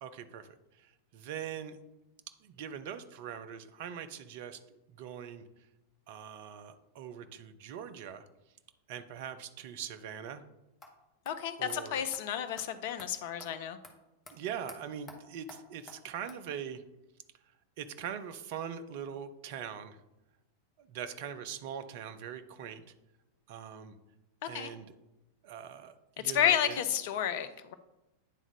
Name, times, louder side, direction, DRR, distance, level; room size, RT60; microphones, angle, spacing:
voice 1, 0.0-1.8 2.4-4.6 5.0-5.4 6.1-8.3 8.9-10.5 11.6-12.0 14.3-16.8 17.8-20.0 20.8-22.8 23.5-24.0 24.5-24.9 25.4-26.8, right 8 dB, 50° right, 10 dB, 0.6 m, -42 dB
sound 1, 10.8-10.9 11.3-11.4 11.7-11.8 12.1-12.2 12.6-12.7 13.0-13.1 13.4-13.5 13.8-13.9 14.3-14.4 14.7-14.8 15.1-15.2 15.5-15.6 15.9-16.0 16.3-16.4, left 2 dB, 15° left, 1.3 m, -49 dB
voice 2, 11.3-13.8 24.4-24.7 26.2-27.7, left 10 dB, 50° left, 11 dB, 0.6 m, -31 dB
9.4 x 3.6 x 5.2 m, 0.97 s
figure-of-eight pair, 90°, 0 cm